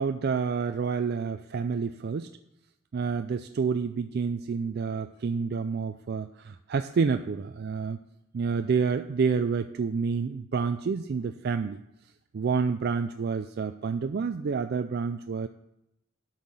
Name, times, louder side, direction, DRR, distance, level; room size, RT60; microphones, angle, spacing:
voice 1, 0.0-2.3 2.9-8.0 8.3-11.8 12.3-15.5, right 5 dB, 50° right, 8 dB, 0.3 m, -28 dB
8.3 x 5.7 x 7.8 m, 0.83 s
head